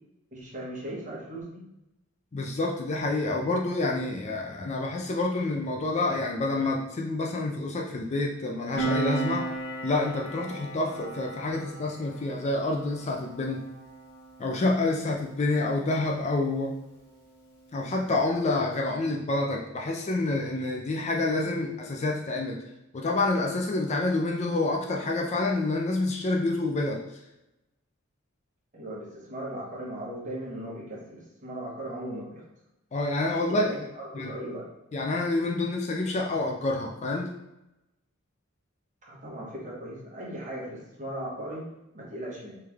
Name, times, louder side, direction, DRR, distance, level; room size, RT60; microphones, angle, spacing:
voice 1, 0.3-1.6 28.7-32.4 33.5-34.7 39.1-41.7 41.9-42.6, right 1 dB, 35° right, -5 dB, 1.2 m, -37 dB
voice 2, 2.3-9.5 9.8-13.6 14.4-16.7 17.7-22.6 22.9-27.0 32.9-33.7 34.1-34.3 34.9-37.3, left 2 dB, 30° left, 0 dB, 0.4 m, -28 dB
Piano, 8.8-15.8 16.1-16.3, right 3 dB, 50° left, 1.1 m, -35 dB
3.3 x 3.2 x 3.4 m, 0.92 s
head